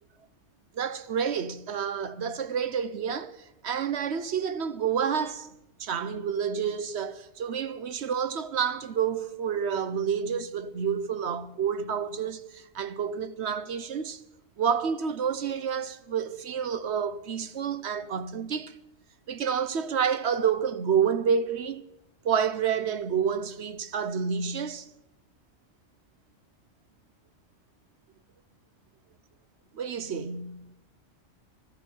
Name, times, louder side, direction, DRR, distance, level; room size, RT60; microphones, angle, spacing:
voice 1, 0.7-5.5 5.8-14.2 14.6-18.7 19.3-21.8 22.2-24.9 29.7-30.6, right 7 dB, 60° right, 1.0 m, -29 dB
20.0 x 14.0 x 4.4 m
omnidirectional pair, 1.3 m